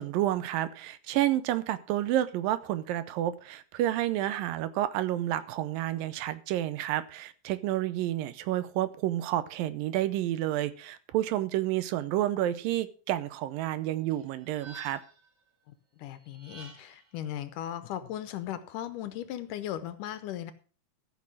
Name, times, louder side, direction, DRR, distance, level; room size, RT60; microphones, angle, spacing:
voice 1, 0.0-15.0, right 13 dB, 85° right, 2.5 m, -30 dB
sound 1, 14.1-15.3 16.2-17.1, right 4 dB, 45° right, 3.4 m, -50 dB
voice 2, 15.7-20.5, left 11 dB, 75° left, 2.2 m, -37 dB
14.0 x 6.1 x 6.2 m
omnidirectional pair, 4.0 m